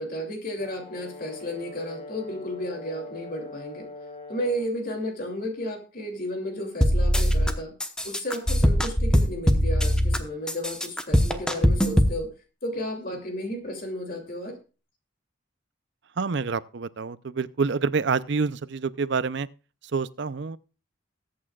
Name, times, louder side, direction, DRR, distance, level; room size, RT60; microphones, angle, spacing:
voice 1, 0.0-3.9 4.3-7.7 8.0-12.3 12.6-14.6, equal, 45° left, 2.7 m, -33 dB
Brass instrument, 0.6-4.8, left 2 dB, 30° left, 1.6 m, -42 dB
sound 1, 6.8-7.5 7.8-10.2 10.5-12.1, equal, 5° left, 0.9 m, -21 dB
voice 2, 16.2-19.5 19.9-20.6, right 4 dB, 55° right, 0.5 m, -27 dB
21.5 x 8.6 x 2.4 m
head